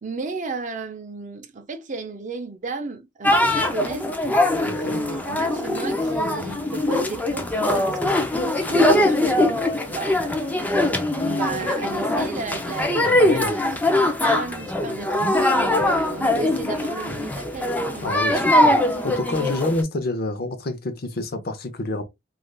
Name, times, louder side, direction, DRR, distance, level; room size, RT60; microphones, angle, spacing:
voice 1, 0.0-4.2 4.8-10.5 11.2-13.6 14.0-18.1, right 4 dB, 40° right, 0.6 m, -34 dB
sound 1, 3.2-19.8, left 1 dB, 10° left, 0.5 m, -22 dB
voice 2, 4.6-5.0 12.9-13.5 18.0-18.8 19.0-22.0, left 2 dB, 55° left, 0.6 m, -28 dB
3.3 x 2.5 x 2.2 m
head